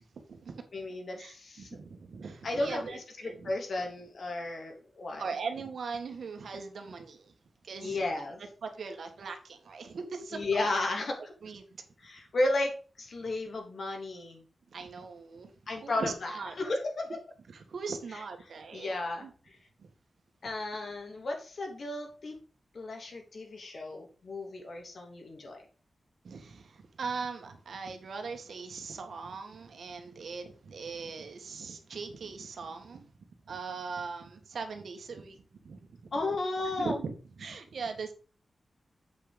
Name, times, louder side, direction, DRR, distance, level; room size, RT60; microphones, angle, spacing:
voice 1, 0.0-0.6 1.2-3.5 5.2-7.3 7.6-8.3 8.6-10.4 11.4-11.6 14.7-16.5 17.5-18.9 19.2-19.3 19.8-19.9 26.2-33.1 33.5-35.4 35.6-36.1 36.7-38.1, right 5 dB, 80° right, 6 dB, 2.0 m, -40 dB
voice 2, 0.7-1.8 2.4-5.2 7.8-8.4 10.3-11.1 12.0-14.4 15.7-16.3 16.6-17.0 18.7-19.3 20.4-22.3 22.7-25.6 36.1-37.0, left 2 dB, 60° left, 2 dB, 3.1 m, -33 dB
8.3 x 6.2 x 5.3 m, 0.38 s
wide cardioid pair, 140°, 0 cm